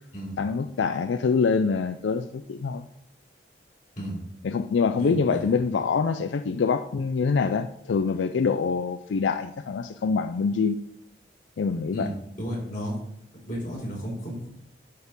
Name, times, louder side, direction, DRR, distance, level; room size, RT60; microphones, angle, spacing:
voice 1, 0.4-2.9 4.4-10.8 11.6-12.1, left 5 dB, 90° left, 9 dB, 0.4 m, -25 dB
voice 2, 5.0-5.5 11.9-12.1 12.4-12.9 13.4-14.5, equal, 45° left, -3 dB, 4.1 m, -33 dB
11.5 x 4.4 x 5.3 m, 0.74 s
head